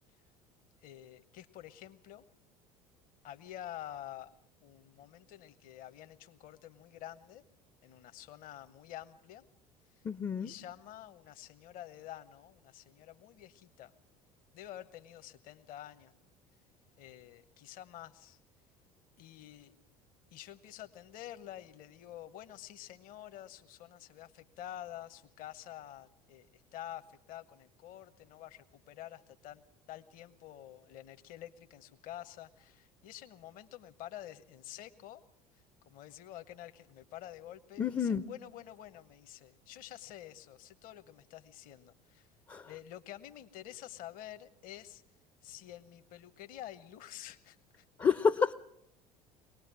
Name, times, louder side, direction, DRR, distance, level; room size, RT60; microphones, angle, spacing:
voice 1, 0.8-2.2 3.2-4.3 4.6-7.4 7.8-9.4 10.4-13.9 14.5-16.1 17.0-18.4 19.2-19.7 20.3-29.6 29.9-35.2 35.9-42.3 42.6-45.0 45.4-47.8, left 12 dB, 45° left, 10 dB, 1.1 m, -49 dB
voice 2, 10.0-10.5 37.8-38.2 42.5-42.7 48.0-48.5, left 6 dB, 20° left, 12 dB, 0.7 m, -29 dB
23.5 x 19.0 x 6.1 m, 0.76 s
figure-of-eight pair, 65°, 19 cm